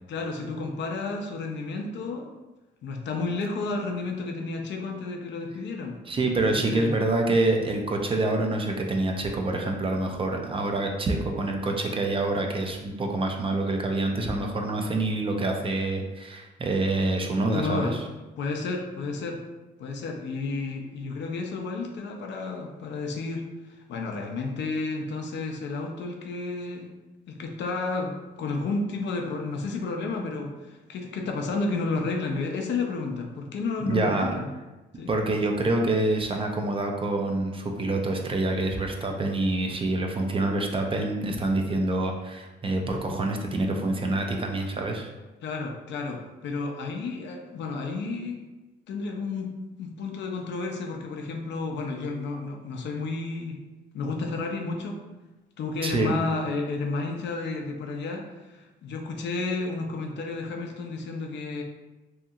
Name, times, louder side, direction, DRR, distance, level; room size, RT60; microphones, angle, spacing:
voice 1, 0.1-2.3 2.8-6.0 6.2-6.9 17.5-18.0 18.4-19.4 19.8-26.9 27.3-34.5 35.0-35.1 45.4-48.4 48.9-49.5 49.8-53.6 53.9-55.0 55.6-61.6, left 3 dB, 65° left, 2 dB, 0.5 m, -31 dB
voice 2, 6.1-18.0 33.9-34.3 35.1-45.1 55.8-56.1, right 2 dB, 25° right, 2 dB, 0.4 m, -26 dB
2.8 x 2.6 x 2.3 m, 1.1 s
cardioid pair, 90°, 20 cm